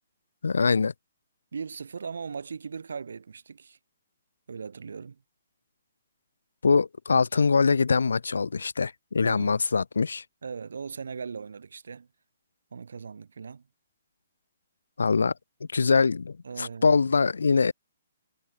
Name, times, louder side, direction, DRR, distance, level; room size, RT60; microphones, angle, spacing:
voice 1, 0.4-0.9 6.6-10.2 15.0-15.3 15.7-17.7, left 4 dB, 90° left, 0.7 m, -23 dB
voice 2, 1.5-3.8 4.5-5.2 9.2-9.6 10.4-12.1 12.7-13.6 16.4-17.2, right 5 dB, 80° right, 2.5 m, -38 dB
hypercardioid pair, 150°, 0 cm